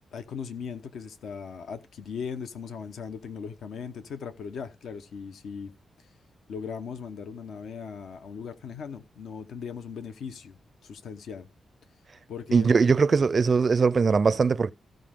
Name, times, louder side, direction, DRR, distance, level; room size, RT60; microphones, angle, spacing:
voice 1, 0.1-5.7 6.5-10.6 10.8-11.5 12.3-12.7, left 6 dB, 80° left, 1.0 m, -38 dB
voice 2, 12.5-14.7, right 5 dB, 35° right, 0.4 m, -21 dB
15.0 x 5.2 x 3.7 m
wide cardioid pair, 130°, 0 cm